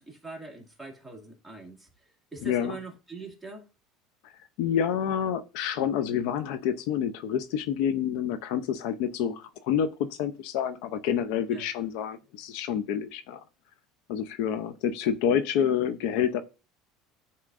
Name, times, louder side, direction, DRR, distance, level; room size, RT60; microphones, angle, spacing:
voice 1, 0.0-1.9 2.3-3.7 11.5-11.6, right 3 dB, ahead, 2.0 m, -42 dB
voice 2, 2.4-2.8 4.6-9.9 10.2-13.4 14.1-16.4, left 9 dB, 75° left, 0.5 m, -28 dB
9.7 x 4.3 x 2.5 m
supercardioid pair, 130°, 0 cm